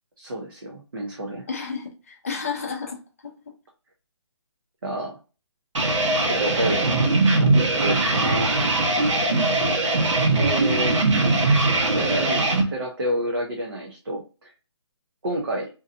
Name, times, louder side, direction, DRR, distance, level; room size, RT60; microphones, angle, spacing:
voice 1, 0.2-1.5 4.8-5.2 6.2-7.1 7.4-8.5 10.4-11.0 11.9-14.5 15.2-15.7, right 1 dB, 50° right, -1 dB, 0.6 m, -29 dB
voice 2, 1.5-3.3 9.3-9.5, left 5 dB, 30° left, 2 dB, 0.5 m, -32 dB
sound 1, 5.7-12.6, right 2 dB, 85° right, 1.0 m, -21 dB
2.6 x 2.3 x 2.5 m, 0.33 s
hypercardioid pair, 175°, 15 cm